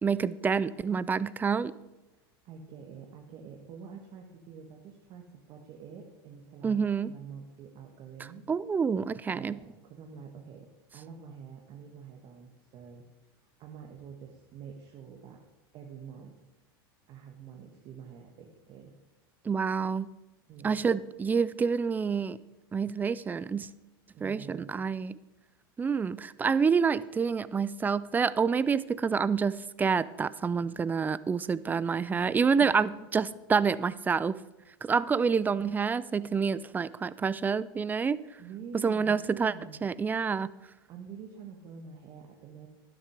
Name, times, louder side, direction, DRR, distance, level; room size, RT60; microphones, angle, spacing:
voice 1, 0.0-1.7 6.6-7.1 8.5-9.6 19.5-20.1 20.6-22.4 22.7-23.7 24.2-25.2 25.8-34.4 34.8-38.2 38.7-39.5 39.8-40.5, right 5 dB, 15° right, 18 dB, 0.3 m, -28 dB
voice 2, 2.4-6.8 7.1-8.5 9.3-13.0 13.6-15.4 15.7-16.3 17.1-18.9 20.5-20.9 24.1-24.7 32.6-33.0 38.4-39.9 40.9-42.7, right 7 dB, 45° right, 1 dB, 1.4 m, -47 dB
11.0 x 6.5 x 5.0 m, 1.0 s
hypercardioid pair, 110°, 12 cm